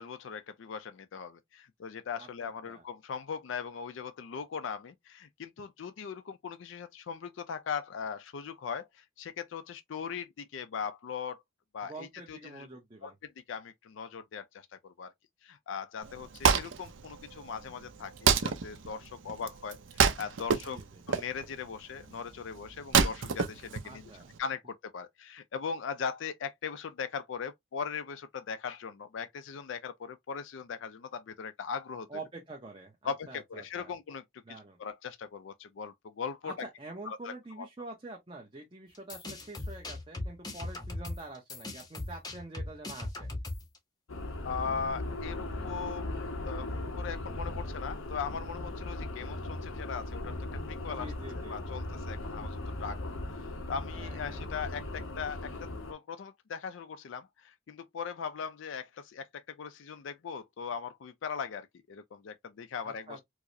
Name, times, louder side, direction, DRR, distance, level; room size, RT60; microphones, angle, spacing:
voice 1, 0.0-11.4 11.7-12.7 13.0-15.1 15.4-20.8 21.1-24.0 24.4-32.1 33.0-36.7 37.1-37.7 44.4-63.2, left 6 dB, 75° left, 0.4 m, -39 dB
voice 2, 2.2-2.8 11.9-13.1 20.6-21.0 23.8-24.3 32.1-33.9 34.4-34.8 36.4-43.3 50.9-51.6 53.9-54.4 62.8-63.2, right 2 dB, 25° right, 0.6 m, -46 dB
Wood, 16.0-24.4, right 6 dB, 75° right, 0.5 m, -29 dB
sound 1, 38.9-43.8, left 2 dB, 20° left, 0.6 m, -38 dB
sound 2, 44.1-55.9, left 2 dB, 90° left, 0.7 m, -38 dB
4.7 x 2.0 x 2.6 m
head